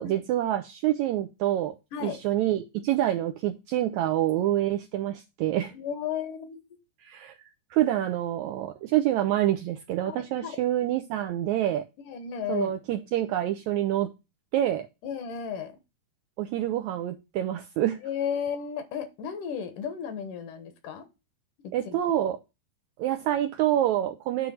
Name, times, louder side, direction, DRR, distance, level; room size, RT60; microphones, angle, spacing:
voice 1, 0.0-5.7 7.0-11.9 12.5-14.1 14.5-14.9 16.4-18.0 21.7-22.4 23.0-24.5, right 12 dB, 85° right, 1.7 m, -27 dB
voice 2, 5.7-6.6 10.1-10.6 12.1-12.7 15.0-15.8 18.0-21.1 21.6-22.0, left 7 dB, 75° left, 2.6 m, -34 dB
9.3 x 3.2 x 6.1 m
omnidirectional pair, 3.8 m